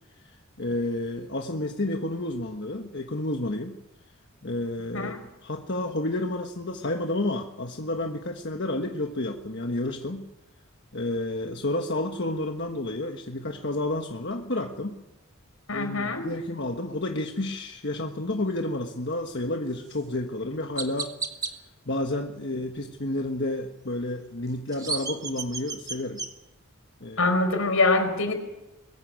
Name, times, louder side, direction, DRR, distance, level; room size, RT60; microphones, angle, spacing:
voice 1, 0.2-3.8 4.4-5.2 5.4-10.3 10.9-14.9 15.7-21.2 21.9-26.2 27.0-27.3, left 1 dB, 55° left, 3 dB, 1.4 m, -30 dB
voice 2, 15.7-16.3 27.2-28.3, left 3 dB, 80° left, 6 dB, 4.8 m, -24 dB
Chirp tweet, 19.9-20.0 20.8-21.5 24.5-26.3, right 4 dB, 15° right, 1.6 m, -33 dB
22.5 x 15.5 x 9.6 m, 0.97 s
head